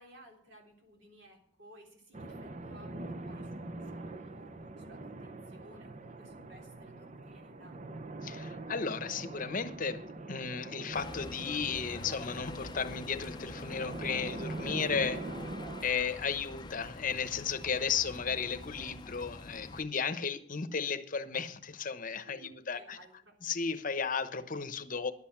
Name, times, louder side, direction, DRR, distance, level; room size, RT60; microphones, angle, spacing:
voice 1, 0.0-4.5 4.8-7.8 15.9-16.0 22.3-23.4, right 1 dB, 65° right, 3.6 m, -57 dB
sound 1, 2.1-15.9, right 2 dB, 40° right, 0.7 m, -43 dB
voice 2, 8.2-15.2 15.8-23.0 23.4-25.1, left 6 dB, 45° left, 0.9 m, -34 dB
sound 2, 10.9-19.8, left 2 dB, 25° left, 0.6 m, -46 dB
11.0 x 7.9 x 7.4 m
head